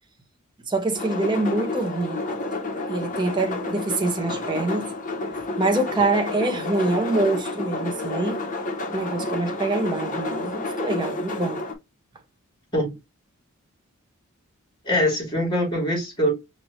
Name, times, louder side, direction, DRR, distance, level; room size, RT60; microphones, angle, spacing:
voice 1, 0.7-2.2 2.9-4.9 5.6-8.4 8.9-11.6, right 2 dB, 20° right, 0.8 m, -25 dB
sound 1, 0.9-11.7, left 2 dB, 35° left, 0.9 m, -30 dB
voice 2, 14.8-16.4, equal, 20° left, 2.4 m, -23 dB
5.0 x 2.7 x 3.1 m
head